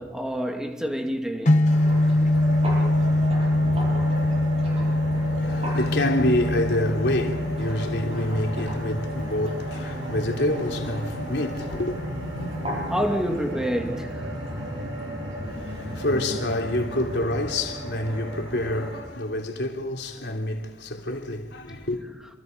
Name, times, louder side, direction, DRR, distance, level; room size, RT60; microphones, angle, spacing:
voice 1, 0.0-1.7 12.9-14.3, equal, 5° right, 2.3 m, -28 dB
sound 1, 1.5-13.5, left 1 dB, 45° left, 1.3 m, -25 dB
sound 2, 1.6-19.0, equal, 35° right, 7.7 m, -36 dB
sound 3, 2.2-17.2, equal, 80° right, 3.5 m, -36 dB
voice 2, 5.3-12.0 15.4-22.0, left 1 dB, 70° left, 3.2 m, -27 dB
27.5 x 26.5 x 5.3 m
head